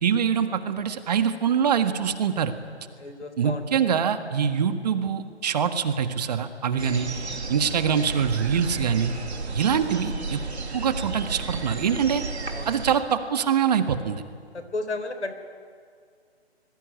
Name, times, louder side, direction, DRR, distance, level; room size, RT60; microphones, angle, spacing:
voice 1, 0.0-2.5 3.4-7.1 7.5-9.1 9.5-10.4 10.7-12.2 12.6-14.2, right 7 dB, 35° right, 9 dB, 1.7 m, -24 dB
voice 2, 3.0-3.8 7.9-8.0 12.5-12.7 14.5-15.3, left 2 dB, 85° left, 9 dB, 4.0 m, -33 dB
sound 1, 6.8-13.0, right 3 dB, 75° right, 2.8 m, -33 dB
25.5 x 20.5 x 9.5 m, 2.1 s
figure-of-eight pair, 145°, 33 cm